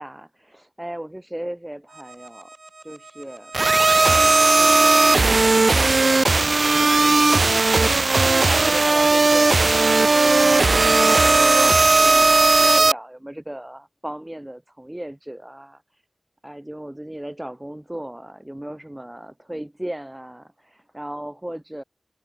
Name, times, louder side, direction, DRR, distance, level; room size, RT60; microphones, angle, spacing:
voice 1, 0.0-2.5 2.8-3.5 4.0-7.6 8.4-16.0 16.4-21.8, right 1 dB, 15° right, 5.3 m, -36 dB
sound 1, 3.5-12.9, right 3 dB, 60° right, 0.4 m, -16 dB
wide cardioid pair, 55°, 0 cm